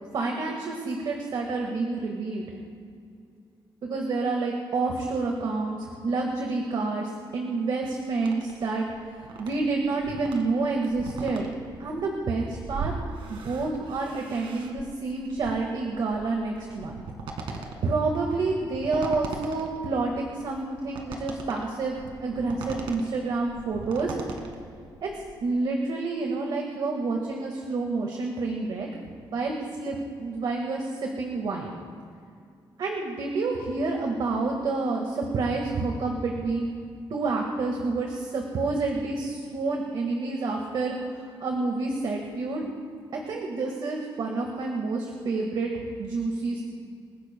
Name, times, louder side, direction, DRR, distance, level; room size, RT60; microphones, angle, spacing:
voice 1, 0.1-2.4 3.8-8.9 9.1-11.5 11.8-12.9 13.3-16.9 17.8-24.2 25.0-25.1 25.4-28.9 29.3-31.8 32.8-36.7 37.1-42.6 43.3-46.6, right 3 dB, 60° right, 1 dB, 1.8 m, -28 dB
sound 1, 8.2-25.5, right 4 dB, 85° right, 2.0 m, -40 dB
27.5 x 15.5 x 2.3 m, 2.3 s
wide cardioid pair, 170°, 9 cm